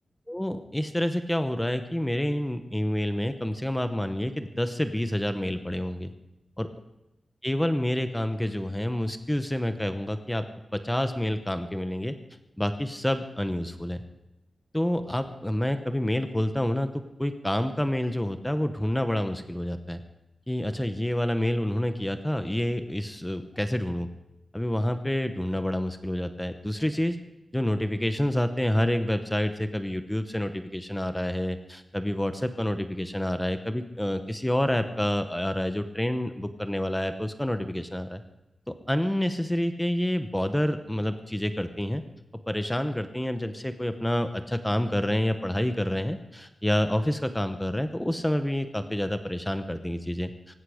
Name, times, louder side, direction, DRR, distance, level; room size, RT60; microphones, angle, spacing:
voice 1, 0.3-6.1 6.6-6.7 7.4-10.4 10.7-12.1 12.6-14.0 14.7-20.0 20.5-24.1 24.5-27.2 27.5-38.2 38.9-42.0 42.5-50.6, left 1 dB, 10° left, 9 dB, 0.8 m, -28 dB
17.5 x 16.5 x 5.0 m, 0.93 s
wide cardioid pair, 130°, 0 cm